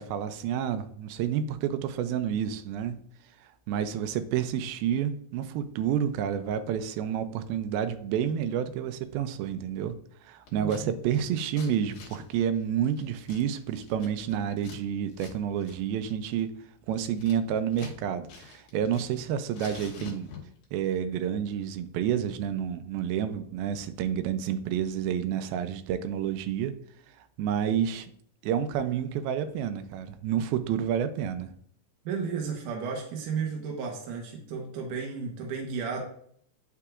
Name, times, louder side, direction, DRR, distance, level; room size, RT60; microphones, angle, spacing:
voice 1, 0.0-3.0 3.7-10.0 10.3-16.5 16.9-20.3 20.7-26.8 27.4-28.1 28.4-31.5, right 9 dB, 85° right, 11 dB, 2.5 m, -29 dB
Scissors, 10.5-10.8 11.1-14.8 15.1-15.3 15.6-15.8 16.1-18.0 18.3-19.2 19.5-20.6, left 5 dB, 65° left, 2.3 m, -46 dB
voice 2, 10.6-10.9 32.1-36.0, right 5 dB, 70° right, 0 dB, 2.3 m, -33 dB
9.7 x 6.0 x 2.4 m, 0.65 s
omnidirectional pair, 4.2 m